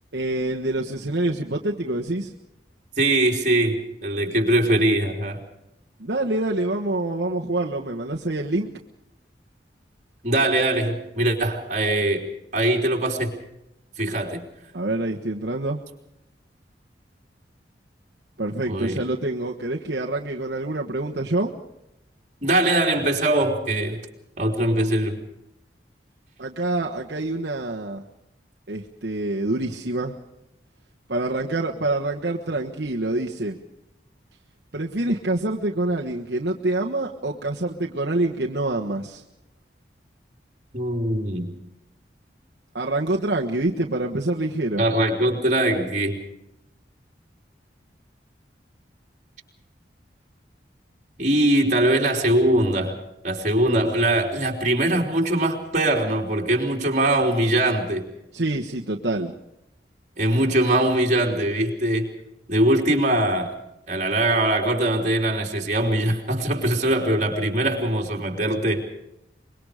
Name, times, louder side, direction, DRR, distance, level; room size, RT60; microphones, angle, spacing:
voice 1, 0.1-2.3 6.0-8.7 14.7-15.8 18.4-21.5 26.4-28.0 28.7-30.1 31.1-33.6 34.7-39.2 42.7-44.8 58.3-59.3, right 2 dB, 65° right, 0 dB, 1.4 m, -26 dB
voice 2, 3.0-5.4 10.2-12.3 12.5-13.3 14.0-14.4 18.7-19.0 22.4-24.0 24.4-25.2 40.7-41.5 44.8-46.2 51.2-53.0 53.2-58.1 60.2-62.1 62.5-63.5 63.9-68.8, right 1 dB, 40° right, 1 dB, 3.7 m, -22 dB
25.0 x 22.5 x 5.0 m, 0.86 s
head